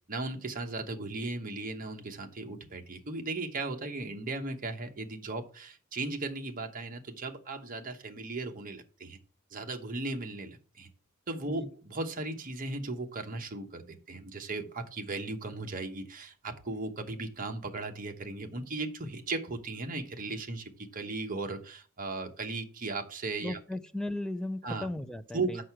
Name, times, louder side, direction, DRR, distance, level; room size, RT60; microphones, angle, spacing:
voice 1, 0.1-9.2 9.5-10.9 11.3-23.6 24.6-24.9 25.3-25.6, right 3 dB, 40° right, 1.0 m, -37 dB
voice 2, 23.4-25.6, left 1 dB, 5° left, 0.4 m, -36 dB
6.4 x 5.6 x 5.9 m
head